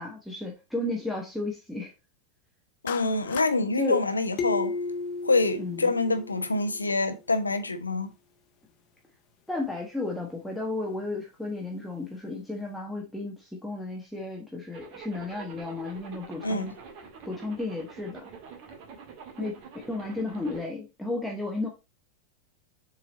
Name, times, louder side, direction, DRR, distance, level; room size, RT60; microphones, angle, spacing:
voice 1, 0.0-1.9 3.8-4.0 5.6-5.9 9.5-16.7 17.2-18.2 19.4-21.7, left 2 dB, ahead, 1.4 m, -33 dB
voice 2, 2.8-4.7 5.2-8.1 16.4-16.7, left 3 dB, 80° left, 1.0 m, -26 dB
Clapping, 2.9-3.6, left 12 dB, 55° left, 0.5 m, -37 dB
sound 1, 4.4-6.9, left 3 dB, 35° left, 1.3 m, -34 dB
Zipper (clothing), 14.7-20.7, right 6 dB, 45° right, 1.9 m, -46 dB
7.3 x 4.4 x 4.1 m
figure-of-eight pair, 90°, 0 cm